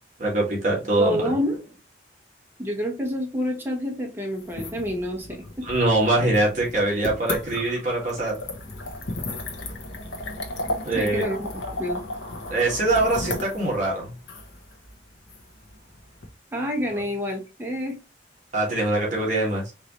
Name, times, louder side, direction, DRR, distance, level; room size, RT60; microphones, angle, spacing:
voice 1, 0.2-1.3 5.6-8.4 10.8-11.3 12.5-14.1 18.5-19.7, right 2 dB, 40° right, -3 dB, 1.8 m, -23 dB
voice 2, 1.0-1.7 2.6-5.7 10.9-12.0 16.5-18.0, left 1 dB, 10° right, 1 dB, 1.0 m, -28 dB
sound 1, 4.4-16.3, left 1 dB, 85° left, 1.0 m, -34 dB
4.7 x 2.7 x 3.0 m, 0.30 s
head